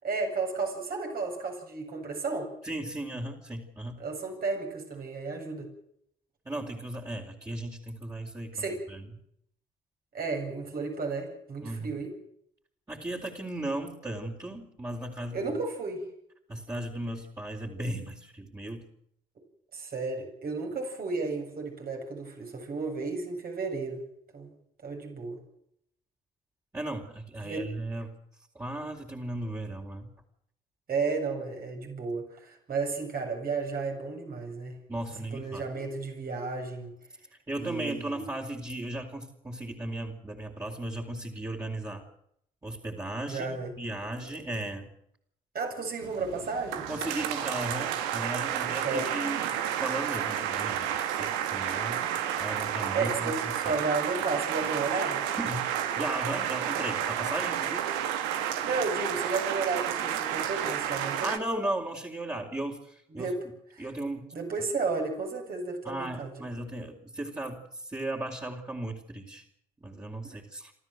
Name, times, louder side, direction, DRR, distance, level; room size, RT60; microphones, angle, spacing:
voice 1, 0.0-2.5 4.0-5.7 8.5-8.8 10.1-12.1 15.3-16.0 19.7-24.0 24.3-24.5 24.8-25.4 27.4-27.7 30.9-34.8 35.3-36.9 37.6-38.3 43.3-43.7 45.5-46.8 48.8-49.1 52.9-55.2 58.6-61.3 63.1-63.4 63.7-63.9 64.3-66.5, right 4 dB, 55° right, 3 dB, 7.9 m, -33 dB
voice 2, 2.6-4.0 6.5-9.0 11.6-11.9 12.9-15.5 16.5-18.8 26.7-28.1 28.5-30.1 34.9-35.6 37.5-42.0 42.6-44.9 46.9-52.0 52.4-53.8 55.4-55.6 56.0-57.9 61.2-63.3 63.8-64.3 65.8-69.4 69.8-70.7, right 1 dB, 20° right, -2 dB, 4.1 m, -36 dB
sound 1, 46.0-61.4, right 10 dB, 85° right, 1.5 m, -31 dB
27.0 x 14.0 x 7.9 m, 0.72 s
hypercardioid pair, 50°, 18 cm